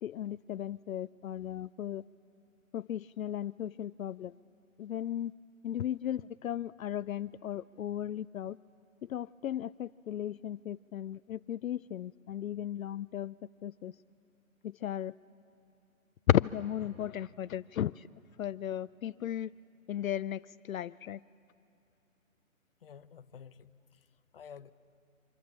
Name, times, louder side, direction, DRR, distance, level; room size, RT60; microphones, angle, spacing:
voice 1, 0.0-2.0 2.7-4.4 4.8-5.3 5.6-8.6 9.0-13.3 13.6-14.0 14.6-15.1 16.3-18.1 18.4-19.5 19.9-21.2, left 11 dB, 75° left, 15 dB, 0.5 m, -35 dB
voice 2, 22.8-24.1 24.3-24.7, left 7 dB, 45° left, 11 dB, 0.7 m, -51 dB
29.0 x 25.5 x 7.2 m, 2.8 s
hypercardioid pair, 165°, 42 cm